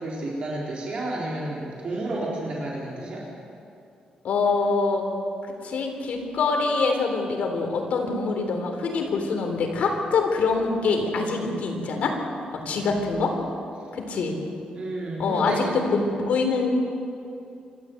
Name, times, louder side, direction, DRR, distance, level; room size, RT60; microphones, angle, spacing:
voice 1, 0.0-3.2 12.7-12.8 13.2-13.3 14.7-15.6 15.9-16.0, right 2 dB, 45° right, -5 dB, 4.1 m, -31 dB
voice 2, 4.2-5.1 5.6-12.1 12.5-13.3 13.9-14.4 15.2-16.7, left 4 dB, 65° left, 3 dB, 3.7 m, -24 dB
26.0 x 13.5 x 8.0 m, 2.6 s
cardioid pair, 140°, 3 cm